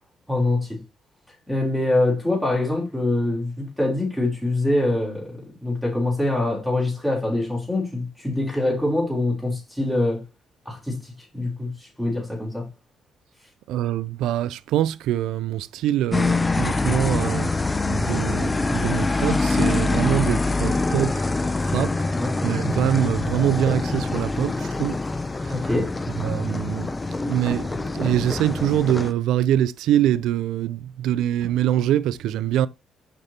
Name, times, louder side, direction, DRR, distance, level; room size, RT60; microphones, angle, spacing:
voice 1, 0.3-0.8 1.5-10.2 10.7-11.7 12.0-12.7 22.1-22.3 25.5-25.9, left 2 dB, ahead, 3.7 m, -24 dB
voice 2, 13.7-17.5 17.8-21.3 21.7-22.0 22.4-25.0 25.4-25.7 26.2-32.7, right 11 dB, 90° right, 0.4 m, -24 dB
sound 1, 16.1-29.1, left 3 dB, 20° left, 0.6 m, -24 dB
6.7 x 5.1 x 4.3 m
cardioid pair, 90°, 0 cm